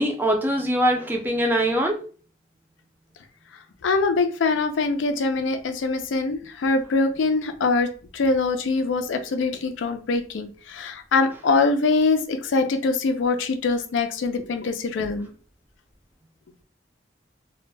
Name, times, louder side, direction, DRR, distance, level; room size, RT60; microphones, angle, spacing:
voice 1, 0.0-2.0, equal, 10° right, 1 dB, 0.4 m, -22 dB
voice 2, 3.8-15.3, left 3 dB, 80° left, 7 dB, 0.4 m, -23 dB
2.2 x 2.1 x 3.2 m, 0.39 s
head